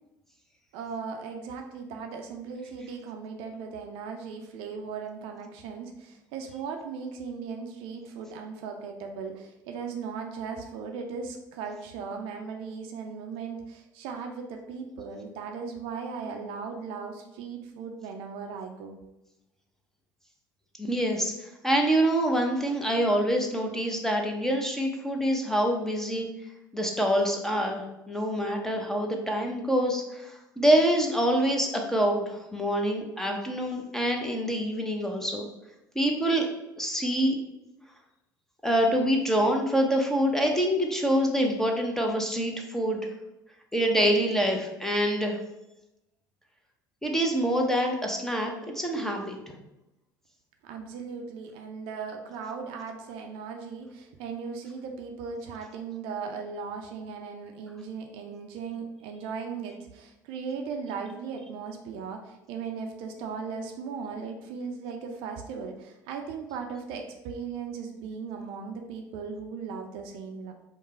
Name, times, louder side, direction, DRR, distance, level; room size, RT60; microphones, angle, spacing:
voice 1, 0.7-19.0 50.6-70.5, right 5 dB, 60° right, 3 dB, 0.6 m, -37 dB
voice 2, 20.8-26.3 26.7-35.5 35.9-36.5 36.8-37.3 38.6-43.1 43.7-45.4 47.0-49.4, equal, 5° left, 1 dB, 0.8 m, -26 dB
4.9 x 2.2 x 4.2 m, 0.91 s
figure-of-eight pair, 65°, 11 cm